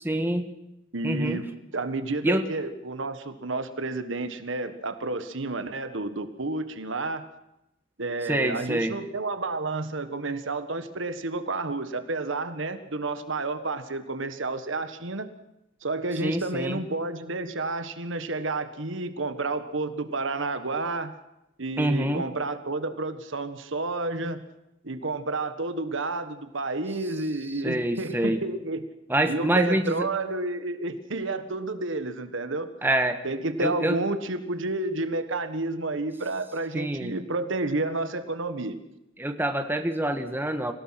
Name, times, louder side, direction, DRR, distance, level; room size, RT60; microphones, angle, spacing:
voice 1, 0.0-0.5 1.0-1.4 2.2-2.4 8.3-9.0 16.2-16.8 21.8-22.2 27.6-28.4 29.1-30.1 32.8-33.2 33.6-34.0 36.7-37.2 39.2-40.7, right 1 dB, 10° right, 7 dB, 1.4 m, -26 dB
voice 2, 0.9-7.2 8.0-15.3 15.8-21.1 21.6-24.4 24.8-28.8 29.3-32.7 33.2-38.8, right 2 dB, 65° right, 10 dB, 1.5 m, -30 dB
26.5 x 17.5 x 5.9 m, 0.86 s
head